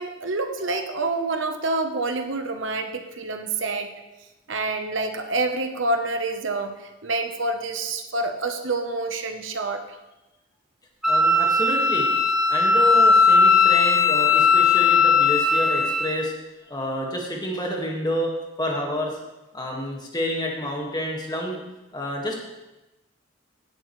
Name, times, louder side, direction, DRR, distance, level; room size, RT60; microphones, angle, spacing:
voice 1, 0.0-3.9 4.5-9.9, right 2 dB, 80° right, 6 dB, 1.0 m, -27 dB
Wind instrument woodwind instrument, 11.0-16.2, left 4 dB, ahead, 0.9 m, -18 dB
voice 2, 11.1-12.1 12.5-16.3 16.7-18.3 18.6-19.1 19.5-21.6 21.9-22.4, left 1 dB, 20° left, -1 dB, 1.8 m, -29 dB
16.5 x 7.7 x 3.2 m, 1.0 s
head